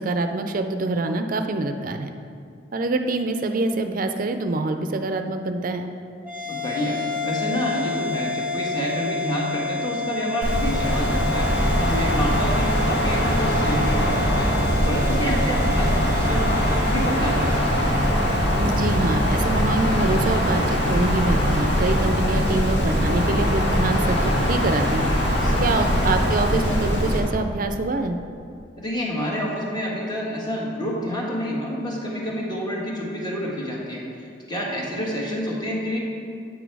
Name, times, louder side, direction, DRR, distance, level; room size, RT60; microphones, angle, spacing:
voice 1, 0.0-2.1 2.7-5.9 18.6-25.1 25.6-28.2, right 2 dB, 45° right, 7 dB, 0.5 m, -25 dB
sound 1, 6.2-20.8, left 2 dB, 10° right, 1.3 m, -31 dB
voice 2, 6.4-17.9 25.4-25.9 28.8-36.0, equal, 25° left, -3 dB, 1.5 m, -28 dB
Wind, 10.4-27.2, equal, 70° left, 1.7 m, -22 dB
8.5 x 6.1 x 4.7 m, 2.4 s
head